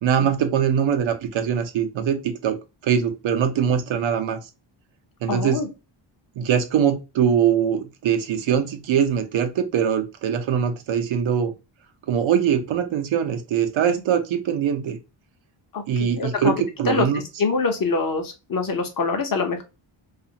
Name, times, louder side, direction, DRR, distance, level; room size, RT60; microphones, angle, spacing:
voice 1, 0.0-2.6 2.8-4.4 5.2-5.6 6.4-11.5 12.1-15.0 15.9-16.5 16.8-17.2, right 8 dB, 75° right, 0.6 m, -22 dB
voice 2, 5.3-5.7 15.7-16.5 16.9-17.1 17.4-19.6, left 4 dB, 45° left, 0.7 m, -24 dB
2.4 x 2.4 x 2.7 m
wide cardioid pair, 145°, 47 cm